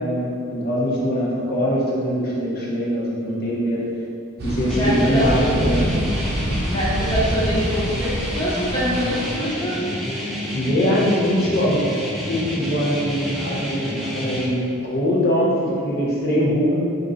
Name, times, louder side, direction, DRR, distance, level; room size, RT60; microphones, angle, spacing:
voice 1, 0.0-3.9 4.4-5.8 10.2-11.8 12.3-16.7, equal, 45° left, -5 dB, 0.8 m, -22 dB
sound 1, 4.4-9.4, equal, 45° right, 0.7 m, -26 dB
voice 2, 4.7-5.5 6.7-9.8, equal, 20° left, -8 dB, 0.9 m, -24 dB
sound 2, 4.7-14.5, equal, ahead, 0.4 m, -29 dB
4.4 x 2.6 x 3.8 m, 2.5 s
head